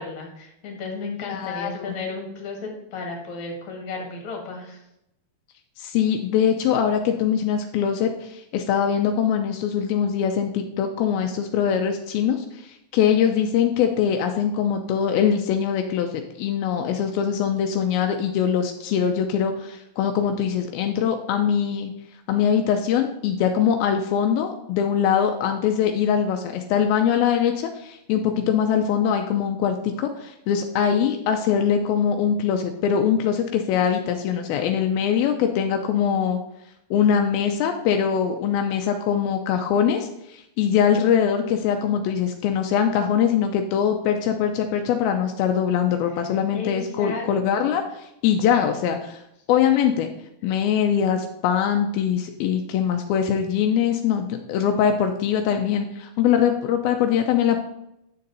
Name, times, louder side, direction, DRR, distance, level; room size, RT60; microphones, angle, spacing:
voice 1, 0.0-4.8 46.5-47.7, left 4 dB, 55° left, 1 dB, 2.9 m, -34 dB
voice 2, 1.3-2.0 5.8-21.9 22.3-36.4 36.9-49.2 49.5-50.1 50.4-57.6, left 8 dB, 85° left, 4 dB, 2.5 m, -22 dB
10.0 x 6.7 x 4.0 m, 0.81 s
omnidirectional pair, 4.4 m